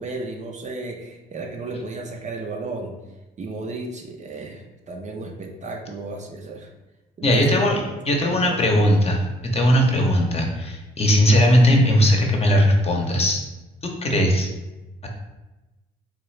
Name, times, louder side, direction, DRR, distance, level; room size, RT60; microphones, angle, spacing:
voice 1, 0.0-3.0 3.4-6.7 7.2-8.6, right 3 dB, 35° right, 2 dB, 0.5 m, -33 dB
voice 2, 7.2-13.4 13.8-14.5 15.0-15.1, equal, 30° left, 1 dB, 0.8 m, -19 dB
3.5 x 2.3 x 3.2 m, 1.1 s
supercardioid pair, 65°, 20 cm